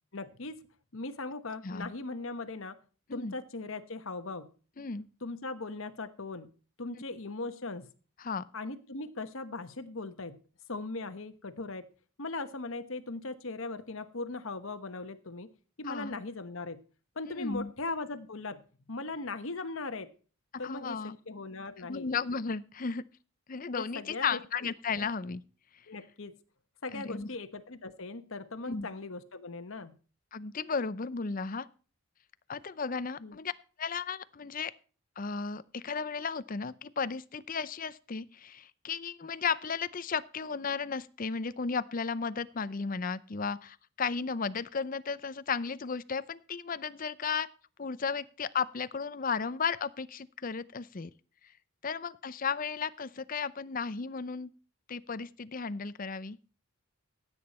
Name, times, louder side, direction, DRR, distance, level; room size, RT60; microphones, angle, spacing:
voice 1, 0.1-0.6 0.9-2.8 3.1-4.5 5.2-6.5 6.8-7.9 8.5-10.4 10.7-11.9 12.2-15.5 15.8-16.8 17.1-18.6 18.9-20.1 20.6-22.1 23.8-24.4 25.9-26.3 26.8-29.9 33.2-33.4, left 3 dB, 65° left, 9 dB, 1.2 m, -39 dB
voice 2, 4.8-5.1 8.2-8.4 15.9-16.2 17.4-17.7 20.5-21.2 21.9-23.0 23.5-25.4 26.9-27.3 28.7-28.9 30.3-31.7 32.5-33.5 33.8-34.7 35.2-47.5 47.8-51.1 51.8-54.5 54.9-56.4, left 5 dB, 40° left, 16 dB, 0.5 m, -34 dB
15.5 x 8.8 x 4.3 m, 0.38 s
head